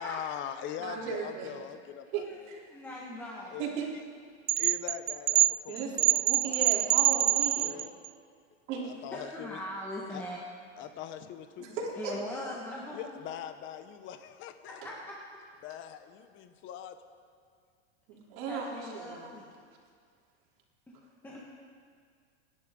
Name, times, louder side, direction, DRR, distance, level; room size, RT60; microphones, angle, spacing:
voice 1, 0.0-2.5 3.5-3.7 4.5-7.9 8.8-9.6 10.1-10.2 10.8-11.8 12.2-12.4 12.9-14.8 15.6-17.0, left 10 dB, 35° left, 9 dB, 0.9 m, -42 dB
voice 2, 0.8-1.5 2.1-2.6 3.6-3.9 5.7-5.9 6.2-7.7 8.7-8.9 11.6-12.2 18.1-19.3, right 5 dB, 55° right, -2 dB, 3.4 m, -36 dB
voice 3, 2.7-3.5 9.1-10.4 12.0-13.2 14.6-15.2 18.5-19.6 21.2-21.4, left 1 dB, 5° left, -5 dB, 1.5 m, -40 dB
sound 1, 4.5-8.1, right 18 dB, 80° right, 0.5 m, -25 dB
27.0 x 10.5 x 3.8 m, 2.1 s
supercardioid pair, 145°, 35 cm